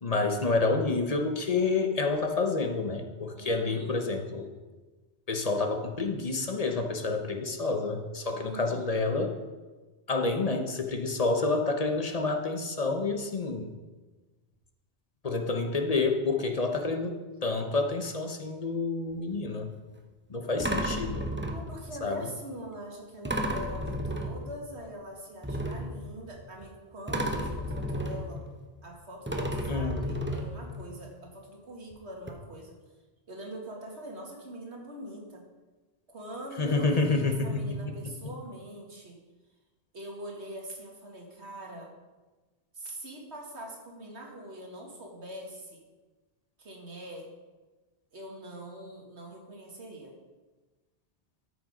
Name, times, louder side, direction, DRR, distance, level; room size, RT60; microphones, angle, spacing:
voice 1, 0.0-4.5 5.3-9.3 10.1-13.7 15.2-19.7 20.3-21.3 22.0-22.3 29.7-30.0 36.6-37.7, left 3 dB, 35° left, 4 dB, 1.0 m, -28 dB
voice 2, 3.4-4.0 8.3-8.9 21.5-28.4 28.8-32.8 33.3-35.4 36.1-39.2 39.9-41.9 42.7-45.9 46.6-47.3 48.1-50.1, right 1 dB, 85° right, 0 dB, 2.2 m, -43 dB
sound 1, 19.1-19.4 20.6-22.0 23.2-24.8 25.4-26.7 27.1-28.9 29.3-31.0 31.9-32.0 32.3-32.4, equal, 10° right, 0.8 m, -33 dB
13.0 x 6.2 x 5.2 m, 1.2 s
omnidirectional pair, 1.1 m